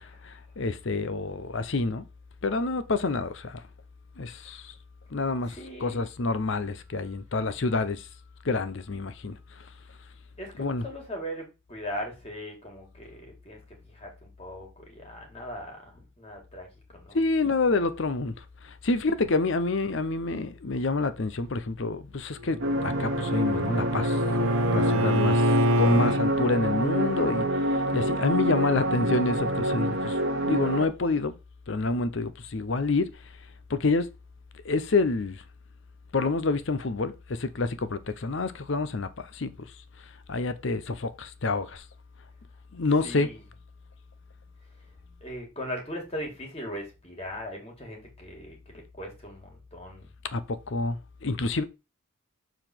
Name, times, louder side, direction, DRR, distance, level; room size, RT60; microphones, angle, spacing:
voice 1, 0.0-2.1 2.4-3.6 4.2-4.7 5.1-8.1 8.4-9.4 10.6-10.8 17.1-18.3 18.6-24.2 24.7-25.5 25.8-30.2 30.4-31.3 31.7-33.1 33.7-34.1 34.6-35.4 36.1-39.7 40.3-41.8 42.7-43.3 50.3-51.6, left 3 dB, 55° left, 0.6 m, -28 dB
voice 2, 5.5-6.1 10.4-13.6 13.9-16.7 16.9-17.2 25.0-25.4 43.0-43.4 45.1-50.1, equal, 30° left, 2.2 m, -39 dB
Bowed string instrument, 22.4-26.2, equal, 80° right, 0.9 m, -25 dB
sound 1, 22.6-30.9, right 1 dB, 55° right, 1.2 m, -27 dB
6.9 x 3.9 x 4.4 m
head